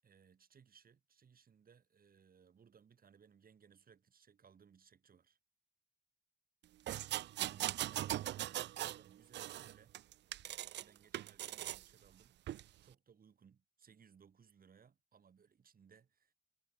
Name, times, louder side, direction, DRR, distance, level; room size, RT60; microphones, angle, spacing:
voice 1, 0.0-5.4 7.4-10.0 10.8-16.3, right 7 dB, 45° right, 7.4 m, -65 dB
sound 1, 6.9-9.0 9.3-10.8 11.1-11.8 12.5-12.6, right 13 dB, 60° right, 0.4 m, -40 dB
cardioid pair, 90°, 20 cm